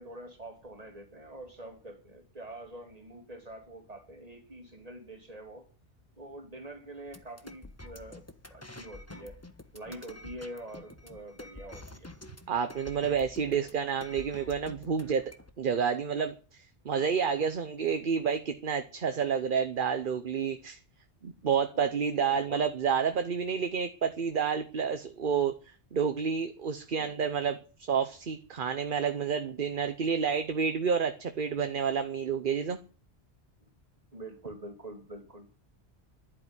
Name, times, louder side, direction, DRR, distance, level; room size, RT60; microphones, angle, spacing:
voice 1, 0.0-5.6 6.2-9.4 9.7-12.1 21.7-21.9 22.3-22.6 26.9-27.1 30.6-30.7 34.1-35.5, right 1 dB, 35° right, 3.0 m, -46 dB
sound 1, 7.1-15.5, left 2 dB, 15° left, 1.2 m, -48 dB
voice 2, 12.5-15.3 15.6-20.8 21.2-25.5 25.9-27.6 27.9-32.8, right 6 dB, 50° right, 1.0 m, -29 dB
11.5 x 8.9 x 9.9 m
omnidirectional pair, 1.1 m